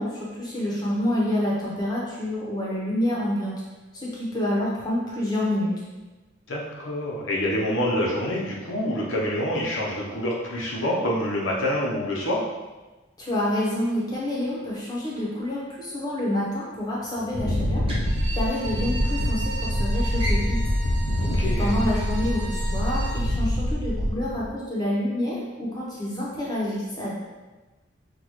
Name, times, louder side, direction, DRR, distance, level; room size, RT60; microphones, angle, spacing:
voice 1, 0.0-3.5 3.9-5.7 13.2-17.8 18.3-20.6 21.4-27.1, left 1 dB, 20° left, -5 dB, 1.0 m, -28 dB
voice 2, 6.5-12.5 21.3-21.7, equal, 90° left, -3 dB, 1.0 m, -26 dB
Wind, 17.3-24.5, equal, 70° left, 0.6 m, -25 dB
sound 1, 17.8-19.3 19.6-19.8 20.1-22.7, left 1 dB, 30° right, 0.8 m, -39 dB
Bowed string instrument, 18.0-23.3, right 2 dB, 60° right, 0.7 m, -38 dB
6.0 x 2.6 x 3.1 m, 1.2 s
head